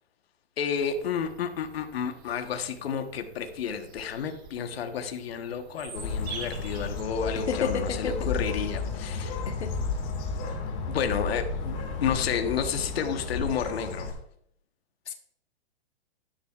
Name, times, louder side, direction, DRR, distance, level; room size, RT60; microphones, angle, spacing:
voice 1, 0.6-9.4 10.9-14.1, left 7 dB, 65° left, 6 dB, 1.3 m, -31 dB
Bird vocalization bird call bird song, 0.7-7.0, right 5 dB, 15° right, 0.7 m, -46 dB
Bird, 5.9-14.1, left 4 dB, 30° left, 2.0 m, -32 dB
voice 2, 7.5-8.3 9.5-9.7 15.1-15.2, left 6 dB, 90° left, 6 dB, 1.2 m, -30 dB
12.5 x 10.5 x 2.5 m, 0.70 s
hypercardioid pair, 165°, 33 cm